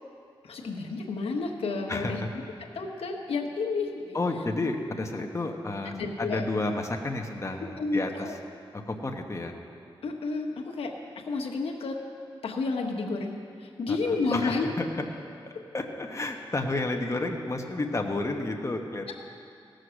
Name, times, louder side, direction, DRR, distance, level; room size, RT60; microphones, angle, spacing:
voice 1, 0.4-2.2 2.7-4.2 5.8-6.4 7.8-8.3 10.0-10.9 11.3-12.0 12.4-13.3 13.6-14.7, left 3 dB, 85° left, 1 dB, 1.2 m, -30 dB
voice 2, 1.9-2.3 4.1-8.4 8.7-9.5 13.9-14.9 15.7-19.1, left 2 dB, 30° left, 3 dB, 1.1 m, -31 dB
17.5 x 6.5 x 6.4 m, 2.4 s
cardioid pair, 70°, 10 cm